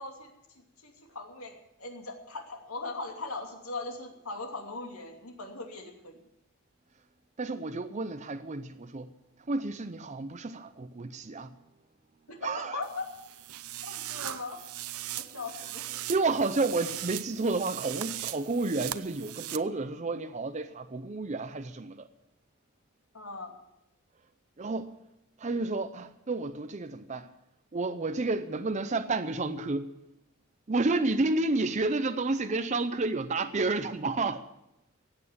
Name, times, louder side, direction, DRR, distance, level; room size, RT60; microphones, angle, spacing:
voice 1, 0.0-6.2 12.3-13.0 13.8-14.6 15.2-15.8 23.1-23.6, left 3 dB, 80° left, 2.7 m, -40 dB
voice 2, 7.4-9.1 9.5-11.6 12.4-12.8 16.0-22.1 24.6-25.0 25.4-27.3 27.7-29.9 30.7-34.4, right 3 dB, 35° right, 0.6 m, -30 dB
sound 1, 12.8-19.6, right 14 dB, 85° right, 0.6 m, -39 dB
15.5 x 8.7 x 8.7 m
head